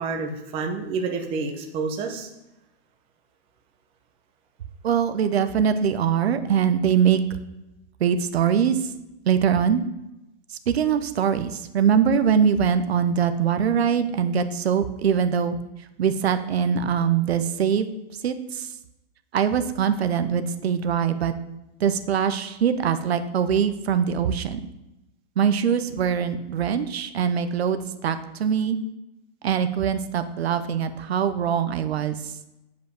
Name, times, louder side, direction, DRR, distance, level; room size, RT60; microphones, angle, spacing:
voice 1, 0.0-2.3, right 4 dB, 15° right, 3 dB, 0.9 m, -29 dB
voice 2, 4.8-7.2 8.0-8.8 9.3-9.8 10.7-15.6 16.0-17.9 18.2-18.7 19.3-21.3 21.8-24.6 25.4-28.8 29.4-32.3, right 7 dB, 75° right, 10 dB, 1.0 m, -22 dB
8.3 x 5.3 x 7.0 m, 0.93 s
hypercardioid pair, 160°, 32 cm